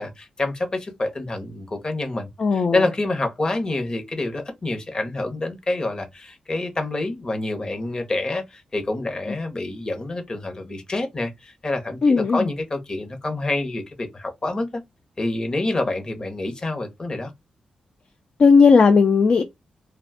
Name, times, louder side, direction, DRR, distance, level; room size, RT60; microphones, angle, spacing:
voice 1, 0.0-14.8 15.2-17.3, left 2 dB, 35° left, 0.8 m, -27 dB
voice 2, 2.4-2.9 12.0-12.5 18.4-19.4, left 5 dB, 50° left, 0.3 m, -15 dB
2.5 x 2.2 x 3.5 m
cardioid pair, 95°, 2 cm